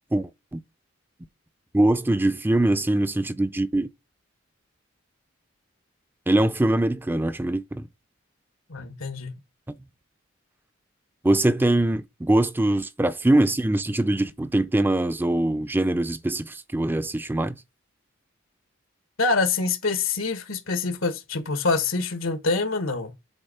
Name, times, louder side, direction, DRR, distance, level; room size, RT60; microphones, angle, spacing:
voice 1, 0.1-0.6 1.7-3.9 6.3-7.9 11.2-17.5, right 1 dB, 10° right, 0.4 m, -22 dB
voice 2, 8.7-9.3 19.2-23.1, left 3 dB, 90° left, 1.4 m, -25 dB
7.9 x 3.6 x 5.5 m
head